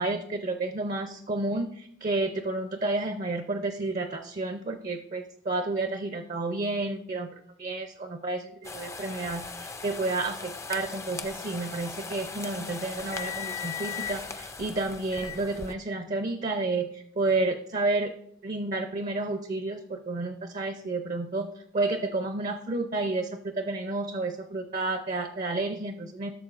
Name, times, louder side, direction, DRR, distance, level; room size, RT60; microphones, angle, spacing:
voice 1, 0.0-7.3 7.6-18.1 18.4-21.5 21.7-26.3, right 2 dB, 40° right, 6 dB, 0.5 m, -31 dB
sound 1, 8.6-15.7, left 5 dB, 15° left, 0.4 m, -38 dB
16.0 x 6.9 x 2.4 m, 0.74 s
head